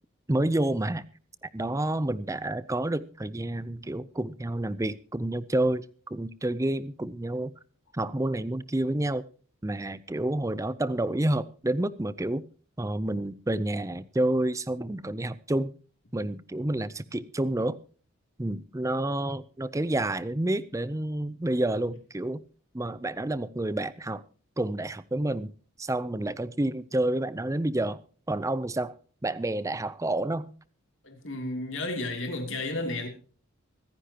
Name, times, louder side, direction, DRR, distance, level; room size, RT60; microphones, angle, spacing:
voice 1, 0.3-1.1 1.4-7.5 7.9-9.2 9.6-12.4 12.8-15.7 16.1-17.8 18.4-22.4 22.7-24.2 24.6-28.0 28.3-28.9 29.2-30.5, right 1 dB, 15° right, 0.5 m, -29 dB
voice 2, 31.0-33.1, left 2 dB, 60° left, 3.0 m, -32 dB
25.0 x 9.9 x 2.9 m
head